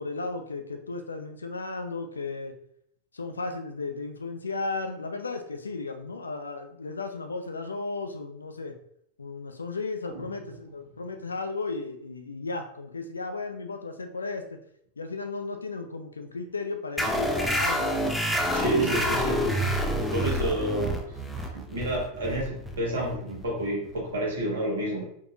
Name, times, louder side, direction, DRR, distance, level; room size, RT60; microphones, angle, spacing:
voice 1, 0.0-2.5 3.1-8.8 9.2-14.6 15.0-18.1 18.9-19.1, left 3 dB, 75° left, 6 dB, 0.3 m, -35 dB
sound 1, 17.0-24.1, equal, 5° left, 0.5 m, -28 dB
voice 2, 18.5-25.0, right 1 dB, 65° right, -2 dB, 1.2 m, -30 dB
3.7 x 2.7 x 2.5 m, 0.70 s
figure-of-eight pair, 90°, 0 cm